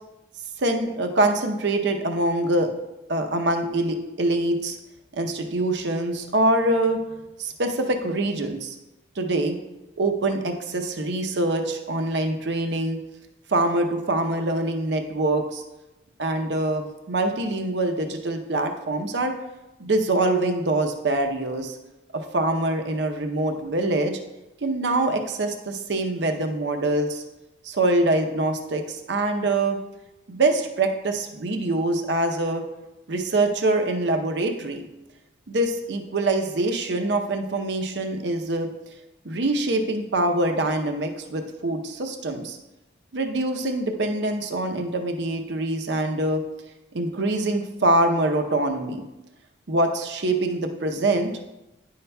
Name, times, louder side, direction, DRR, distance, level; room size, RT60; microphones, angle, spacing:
voice 1, 0.6-2.7 3.1-4.8 5.1-7.0 7.4-8.8 9.2-9.6 10.0-13.0 13.5-15.6 16.2-19.3 19.8-21.8 22.1-24.2 24.6-27.2 27.6-29.8 30.3-32.6 33.1-34.9 35.5-38.7 39.2-42.6 43.1-46.4 46.9-49.0 49.7-51.3, right 2 dB, 65° right, 4 dB, 0.7 m, -24 dB
10.0 x 5.6 x 2.2 m, 0.99 s
head